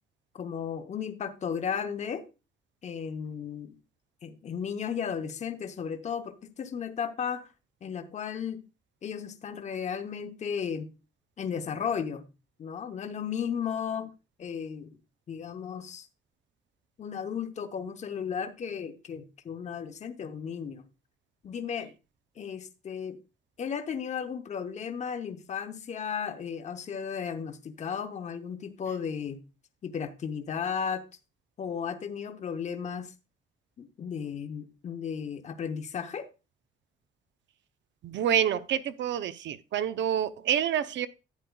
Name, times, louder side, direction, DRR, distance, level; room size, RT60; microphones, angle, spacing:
voice 1, 0.3-2.2 2.8-3.7 4.2-7.5 7.8-8.6 9.0-10.9 11.4-12.3 12.6-14.1 14.4-15.0 15.3-16.1 17.0-20.9 21.4-21.9 22.4-23.2 23.6-29.4 29.8-31.0 31.6-33.1 33.8-36.3, left 7 dB, 35° left, 0.8 m, -34 dB
voice 2, 38.0-41.1, right 10 dB, 70° right, 0.6 m, -28 dB
11.5 x 9.1 x 2.2 m
wide cardioid pair, 180°, 20 cm